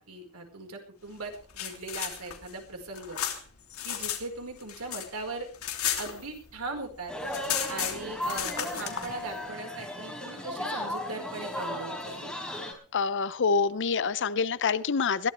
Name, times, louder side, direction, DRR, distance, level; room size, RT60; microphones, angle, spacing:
voice 1, 0.0-3.2 3.8-5.5 6.0-7.1 7.7-12.3, right 3 dB, 85° right, 3 dB, 4.9 m, -39 dB
sound 1, 1.3-4.2 4.5-6.7 6.9-7.0 7.3-9.1, left 10 dB, 70° left, 3.1 m, -34 dB
sound 2, 7.1-12.7, left 1 dB, 5° left, 4.3 m, -36 dB
voice 2, 12.9-15.3, left 5 dB, 55° left, 17 dB, 0.7 m, -26 dB
21.5 x 15.5 x 3.5 m, 0.38 s
head